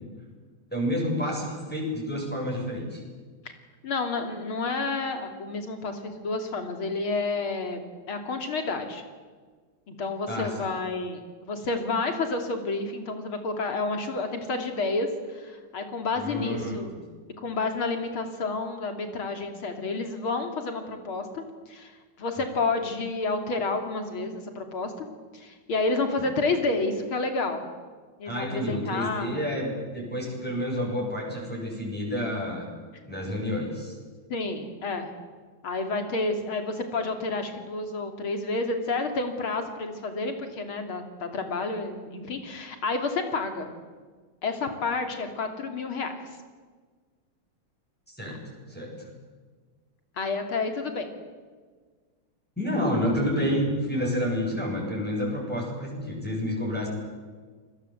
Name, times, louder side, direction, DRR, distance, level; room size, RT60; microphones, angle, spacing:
voice 1, 0.7-3.0 10.3-10.5 16.2-16.8 26.2-26.3 28.3-32.7 33.0-34.0 48.1-48.9 52.6-56.9, equal, 5° left, -2 dB, 7.3 m, -29 dB
voice 2, 3.8-7.8 8.1-9.0 9.9-16.9 17.4-25.1 25.3-27.6 28.2-29.4 34.3-35.1 35.6-43.7 44.4-46.3 48.3-48.4 50.2-51.1 53.2-53.3, left 3 dB, 90° left, 6 dB, 3.8 m, -30 dB
28.5 x 21.5 x 8.0 m, 1.5 s
omnidirectional pair, 2.2 m